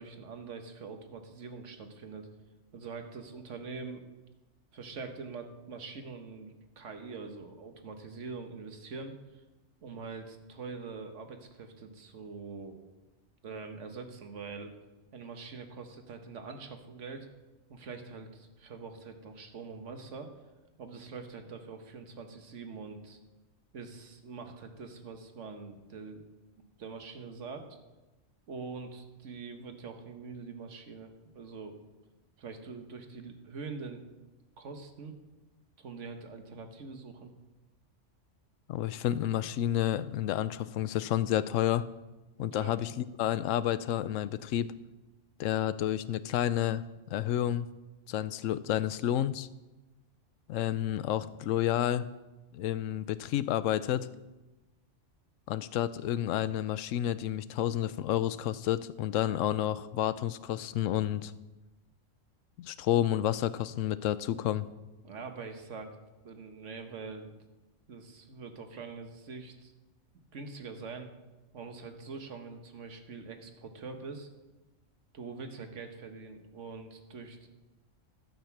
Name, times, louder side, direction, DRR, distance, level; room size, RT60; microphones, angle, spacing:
voice 1, 0.0-2.3 2.7-4.1 4.7-9.4 9.8-12.8 13.4-14.7 15.1-17.3 17.7-20.3 20.8-23.2 23.7-26.2 26.8-27.7 28.5-31.7 32.4-34.1 34.6-35.1 35.8-37.3 42.4-42.8 65.0-66.0 66.2-67.3 67.9-69.7 70.3-71.1 71.5-74.3 75.1-77.5, right 4 dB, 75° right, 6 dB, 1.5 m, -44 dB
voice 2, 38.7-41.9 42.4-44.7 45.4-46.8 47.1-47.7 48.1-49.5 50.5-52.1 52.5-54.1 55.5-61.3 62.6-64.7, left 12 dB, 85° left, 15 dB, 0.9 m, -30 dB
12.0 x 8.1 x 5.9 m, 1.1 s
omnidirectional pair, 1.3 m